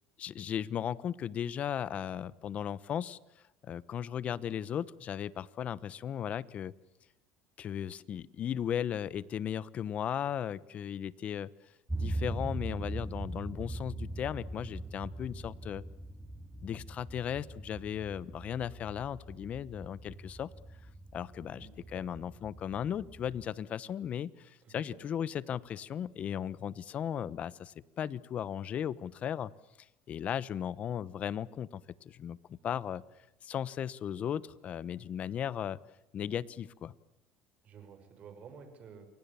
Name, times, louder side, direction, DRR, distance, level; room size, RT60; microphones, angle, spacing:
voice 1, 0.2-3.2 3.6-6.7 7.6-11.5 12.0-15.8 16.6-20.5 21.1-29.5 30.1-33.0 33.4-35.8 36.1-36.9, left 9 dB, 40° left, 18 dB, 1.0 m, -36 dB
sound 1, 11.9-23.5, right 1 dB, 5° right, 2.6 m, -41 dB
voice 2, 21.5-22.0 24.6-25.0 37.6-39.1, right 6 dB, 40° right, 8 dB, 6.3 m, -51 dB
29.0 x 24.0 x 7.1 m, 0.92 s
supercardioid pair, 120°, 3 cm